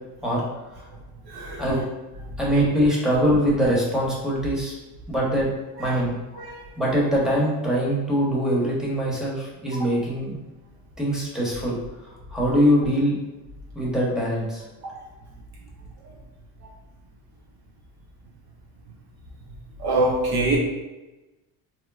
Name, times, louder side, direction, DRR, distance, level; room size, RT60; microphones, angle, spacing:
voice 1, 1.3-1.6 5.8-5.9 6.4-6.6 9.8-9.9 14.8-14.9 19.8-20.6, right 2 dB, 55° right, -1 dB, 0.6 m, -24 dB
voice 2, 2.4-4.7 5.1-5.5 5.8-6.1 6.8-10.4 11.0-11.8 12.3-13.2 13.7-14.6, equal, ahead, -5 dB, 1.0 m, -22 dB
4.3 x 2.0 x 2.3 m, 1.1 s
cardioid pair, 90°, 46 cm